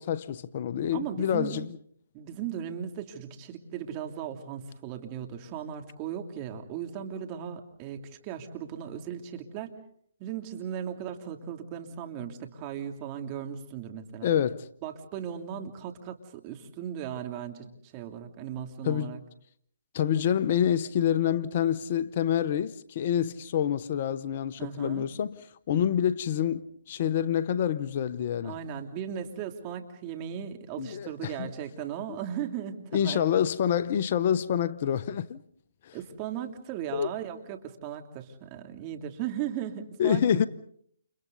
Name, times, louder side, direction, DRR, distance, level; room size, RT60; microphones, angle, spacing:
voice 1, 0.0-1.7 14.2-14.7 18.8-19.2 19.9-25.4 25.7-28.6 30.8-31.5 32.1-32.2 32.9-35.4 35.8-36.0 36.9-37.1 40.0-40.5, left 9 dB, 45° left, 0.9 m, -27 dB
voice 2, 0.9-1.6 2.1-9.7 10.2-14.3 14.8-19.2 24.6-25.1 28.4-33.2 35.9-40.2, right 9 dB, 30° right, 3.0 m, -37 dB
30.0 x 29.5 x 4.0 m
hypercardioid pair, 145°, 0 cm